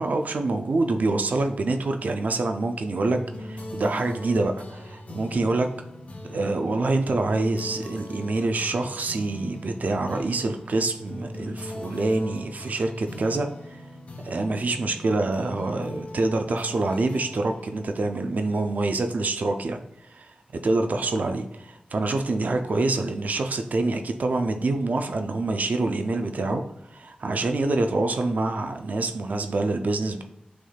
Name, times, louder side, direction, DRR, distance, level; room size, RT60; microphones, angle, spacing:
voice 1, 0.0-5.7 6.2-13.8 14.2-19.8 20.1-26.6 26.9-30.2, right 2 dB, 65° right, 6 dB, 0.5 m, -26 dB
sound 1, 3.1-18.9, left 1 dB, 50° left, 0.7 m, -40 dB
6.3 x 3.4 x 2.3 m, 0.82 s
wide cardioid pair, 95°, 3 cm